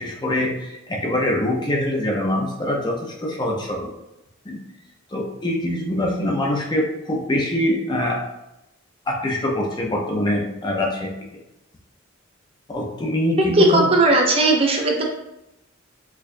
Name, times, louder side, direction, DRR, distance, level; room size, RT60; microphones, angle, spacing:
voice 1, 0.0-3.9 4.5-4.6 5.1-8.2 9.1-11.1 12.7-13.9, left 1 dB, 20° left, -1 dB, 0.5 m, -24 dB
voice 2, 13.4-15.0, right 2 dB, 30° right, 0 dB, 0.5 m, -17 dB
4.5 x 2.3 x 2.5 m, 0.90 s
head